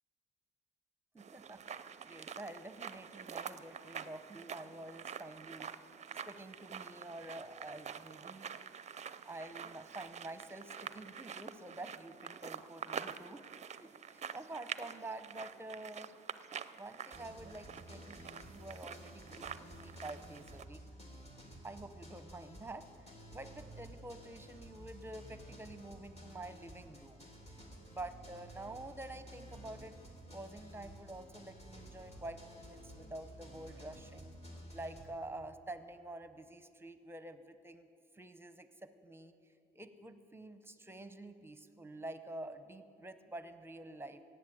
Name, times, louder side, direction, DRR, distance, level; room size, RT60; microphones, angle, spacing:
voice 1, 1.1-5.9 6.2-8.5 9.2-13.4 13.7-16.1 16.7-20.8 21.6-27.3 27.9-29.9 30.3-34.3 34.7-37.9 38.1-39.3 39.7-44.2, right 2 dB, 10° right, 10 dB, 0.9 m, -48 dB
sound 1, 1.2-20.6, right 7 dB, 35° right, 0.5 m, -47 dB
sound 2, 17.1-35.0, right 1 dB, 30° left, 3.0 m, -53 dB
17.0 x 8.0 x 7.9 m, 2.4 s
cardioid pair, 90°, 20 cm